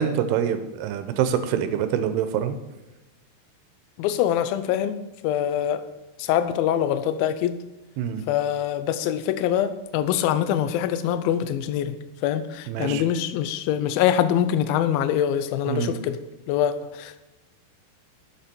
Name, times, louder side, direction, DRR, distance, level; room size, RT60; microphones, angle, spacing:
voice 1, 0.0-2.6 8.0-8.2 12.7-13.0 15.7-16.0, right 8 dB, 80° right, 10 dB, 2.6 m, -25 dB
voice 2, 4.0-5.0 5.2-5.8 6.2-7.6 8.3-12.0 12.2-16.2 16.5-17.2, left 10 dB, 80° left, 11 dB, 2.1 m, -24 dB
11.5 x 6.9 x 4.3 m, 1.0 s
omnidirectional pair, 4.9 m